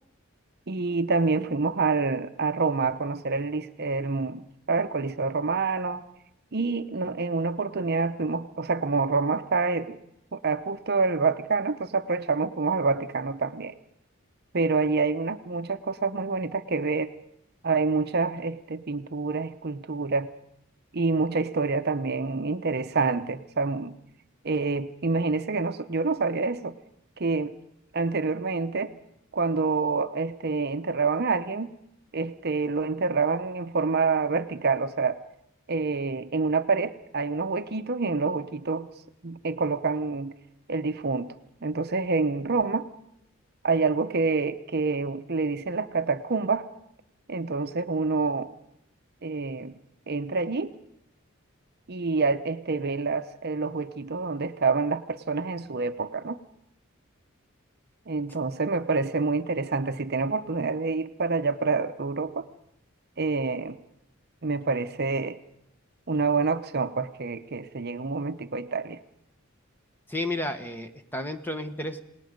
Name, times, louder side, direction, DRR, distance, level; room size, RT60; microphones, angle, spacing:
voice 1, 0.7-6.0 6.5-10.0 10.3-13.7 14.5-17.1 17.6-20.3 20.9-24.0 24.4-26.8 27.2-27.5 27.9-28.9 29.3-31.7 32.1-35.2 35.7-38.9 39.2-40.3 40.7-41.3 41.6-42.9 43.6-46.7 47.3-48.5 49.2-49.7 50.1-50.7 51.9-56.4 58.1-62.5 63.2-63.8 64.4-65.4 66.1-69.0, right 4 dB, 50° right, 10 dB, 0.8 m, -27 dB
voice 2, 70.1-72.0, left 1 dB, 10° left, 8 dB, 1.3 m, -32 dB
28.0 x 19.0 x 5.2 m, 0.76 s
head